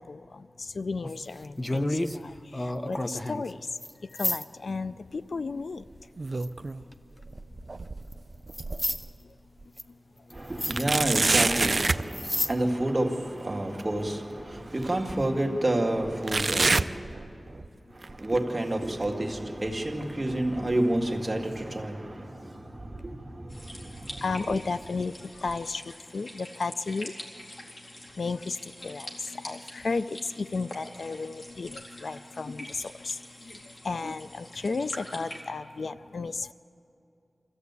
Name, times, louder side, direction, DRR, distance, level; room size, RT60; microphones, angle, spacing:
voice 1, 0.0-3.7 4.1-5.8 24.2-27.1 28.2-33.6 33.8-36.5, left 4 dB, 75° left, 14 dB, 0.4 m, -34 dB
sound 1, 1.0-2.2 2.5-3.5 3.8-4.4 6.4-6.9 8.1-8.2 8.5-9.0 9.8-9.9 10.3-10.4 10.6-10.8 12.0-12.5 12.9-13.0, left 1 dB, 20° left, 0.6 m, -30 dB
sound 2, 5.9-6.8 7.2-9.1 9.6-9.7 10.7-12.1 13.8-13.9 14.8-14.9 16.3-17.7 18.0-18.4 19.0-19.1 20.0-20.1, right 3 dB, 50° right, 0.4 m, -27 dB
voice 2, 10.3-16.7 18.2-22.1 23.0-23.1, right 1 dB, 30° right, 1 dB, 2.1 m, -28 dB
sound 3, 23.5-35.4, left 1 dB, 55° left, 2.7 m, -45 dB
25.0 x 14.5 x 8.2 m, 2.7 s
wide cardioid pair, 90°, 0 cm